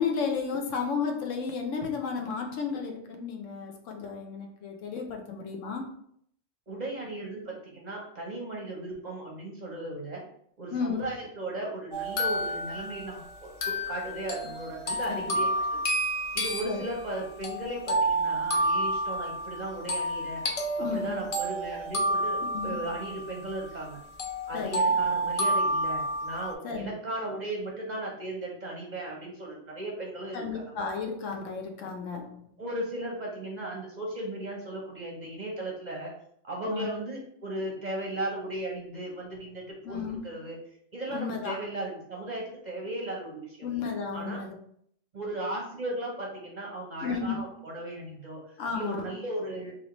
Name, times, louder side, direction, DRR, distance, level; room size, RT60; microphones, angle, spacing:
voice 1, 0.0-5.9 10.7-11.0 15.1-15.4 16.6-16.8 20.8-21.1 22.5-22.8 24.5-24.9 26.6-26.9 30.3-32.4 36.7-36.9 39.8-40.2 41.1-41.6 43.6-44.5 47.0-47.5 48.6-49.0, left 5 dB, 80° left, 2 dB, 1.0 m, -33 dB
voice 2, 6.7-10.2 10.6-15.8 16.3-20.4 20.8-24.0 24.5-30.7 32.6-36.1 36.4-40.6 40.9-43.7 44.1-44.4 45.1-48.4 48.7-49.8, right 1 dB, 45° right, -2 dB, 0.6 m, -36 dB
sound 1, 11.9-23.9 24.2-26.5, right 1 dB, 60° left, 0.3 m, -30 dB
3.3 x 2.6 x 2.9 m, 0.67 s
omnidirectional pair, 1.3 m